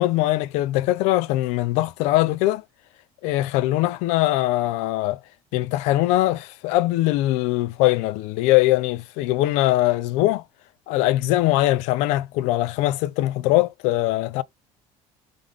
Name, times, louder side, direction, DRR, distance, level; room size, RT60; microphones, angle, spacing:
voice 1, 0.0-2.6 3.2-5.2 5.5-10.4 10.9-14.4, left 16 dB, 75° left, 0.4 m, -21 dB
3.7 x 3.2 x 3.5 m
cardioid pair, 175°, 12 cm